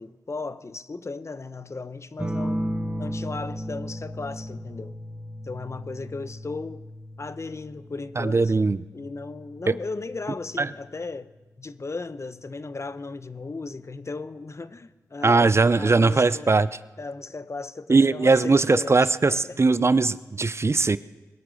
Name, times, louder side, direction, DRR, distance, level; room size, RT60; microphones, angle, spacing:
voice 1, 0.0-2.6 3.0-5.0 5.4-6.8 7.2-8.5 8.9-11.3 11.6-16.5 17.0-19.6, left 3 dB, 45° left, 0.8 m, -36 dB
sound 1, 2.2-11.3 12.7-13.3, equal, 20° right, 1.7 m, -35 dB
voice 2, 8.2-8.8 9.7-9.8 10.6-10.7 15.2-16.7 17.9-21.0, right 3 dB, 40° right, 0.6 m, -20 dB
21.5 x 8.1 x 6.3 m
cardioid pair, 40°, 7 cm